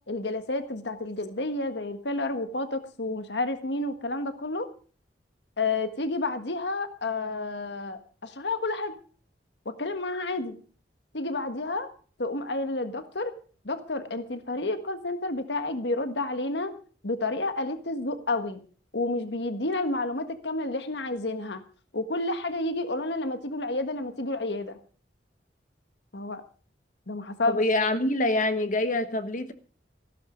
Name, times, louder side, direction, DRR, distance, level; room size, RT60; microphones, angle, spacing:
voice 1, 0.1-4.7 5.6-9.0 9.6-10.6 11.1-11.9 12.2-13.3 13.6-16.7 17.0-18.6 18.9-21.6 21.9-24.8 26.1-26.4 27.1-27.6, left 2 dB, 75° left, 9 dB, 1.5 m, -30 dB
voice 2, 27.5-29.5, left 2 dB, 50° left, 10 dB, 1.2 m, -25 dB
15.5 x 11.5 x 5.1 m, 0.41 s
head